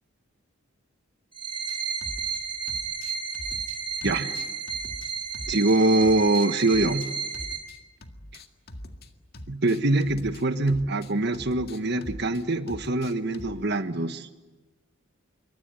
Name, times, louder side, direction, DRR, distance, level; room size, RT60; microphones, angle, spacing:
sound 1, 1.3-7.6, right 6 dB, 25° right, 4.5 m, -32 dB
sound 2, 1.7-2.4 2.7-5.8 6.0-9.1 9.3-13.7, left 1 dB, 45° left, 1.9 m, -43 dB
voice 1, 4.0-4.4 5.5-7.1 9.5-14.3, right 2 dB, 50° right, 9 dB, 1.4 m, -24 dB
27.0 x 24.0 x 9.0 m, 1.1 s
head